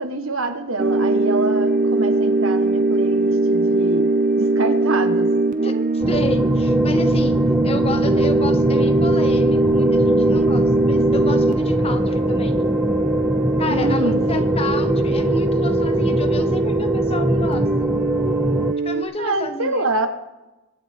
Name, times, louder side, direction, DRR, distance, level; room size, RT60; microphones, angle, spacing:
voice 1, 0.0-4.1 4.4-5.3 13.7-14.6 19.2-20.1, right 2 dB, 85° right, 7 dB, 1.5 m, -26 dB
sound 1, 0.8-19.0, right 2 dB, 40° right, 0.7 m, -21 dB
voice 2, 5.6-7.3 7.6-12.6 13.6-17.9 18.8-19.8, left 2 dB, 30° left, 8 dB, 1.0 m, -30 dB
sound 2, 6.0-18.7, equal, 5° right, 0.4 m, -22 dB
24.5 x 8.7 x 3.7 m, 1.1 s
head